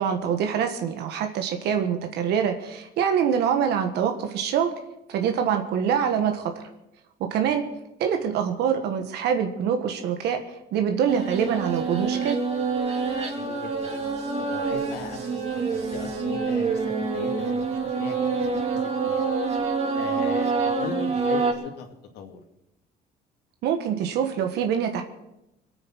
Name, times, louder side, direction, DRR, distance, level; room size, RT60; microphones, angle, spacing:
voice 1, 0.0-4.7 5.1-6.6 7.2-7.7 8.0-10.4 10.7-12.4 23.6-25.0, right 8 dB, 80° right, 6 dB, 1.5 m, -25 dB
sound 1, 11.1-21.5, right 4 dB, 40° right, 2.8 m, -26 dB
voice 2, 13.3-13.9 14.4-18.4 18.7-19.3 19.9-21.9 22.1-22.4, left 5 dB, 80° left, 4 dB, 2.4 m, -39 dB
22.0 x 8.9 x 6.1 m, 0.88 s
cardioid pair, 110°, 17 cm